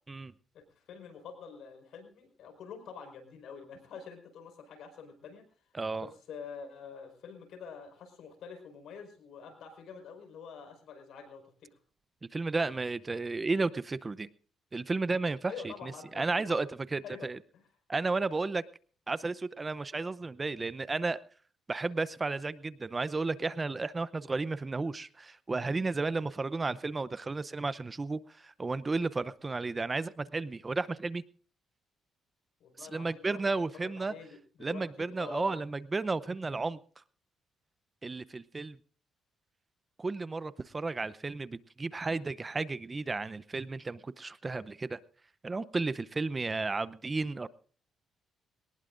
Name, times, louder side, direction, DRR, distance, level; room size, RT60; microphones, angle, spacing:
voice 1, 0.5-5.5 6.0-11.7 15.5-16.6 17.0-17.3 17.5-17.7 32.6-35.6, left 6 dB, 75° left, 7 dB, 4.9 m, -47 dB
voice 2, 5.7-6.1 12.3-14.3 14.7-17.4 17.9-18.6 19.1-21.2 21.7-31.2 32.9-34.1 34.6-36.8 38.0-38.8 40.0-45.0 45.4-47.5, right 3 dB, 25° right, 17 dB, 0.7 m, -33 dB
22.5 x 19.0 x 2.6 m, 0.43 s
cardioid pair, 90°, 0 cm